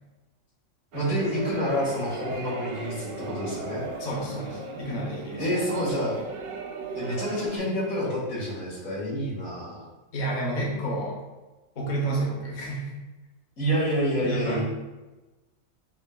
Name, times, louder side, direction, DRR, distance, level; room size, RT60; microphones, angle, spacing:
voice 1, 0.9-3.8 5.4-6.1 7.0-9.8 13.6-14.6, equal, 80° left, -7 dB, 2.1 m, -28 dB
sound 1, 0.9-7.6, right 3 dB, 60° right, 0.7 m, -37 dB
voice 2, 4.0-5.5 10.1-11.2 11.8-13.0 14.2-14.6, right 1 dB, 40° left, -3 dB, 0.8 m, -30 dB
7.1 x 2.6 x 2.2 m, 1.2 s
omnidirectional pair, 1.4 m